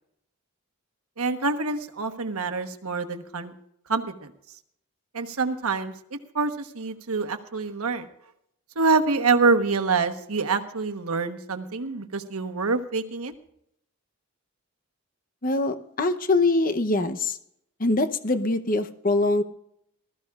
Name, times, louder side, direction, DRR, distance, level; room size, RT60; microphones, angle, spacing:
voice 1, 1.2-3.5 3.9-4.3 5.1-5.9 6.3-8.1 8.7-13.3, right 4 dB, 90° right, 7 dB, 1.2 m, -26 dB
voice 2, 15.4-17.4 17.8-19.4, left 2 dB, 40° left, 9 dB, 0.8 m, -23 dB
20.0 x 14.0 x 2.5 m, 0.73 s
head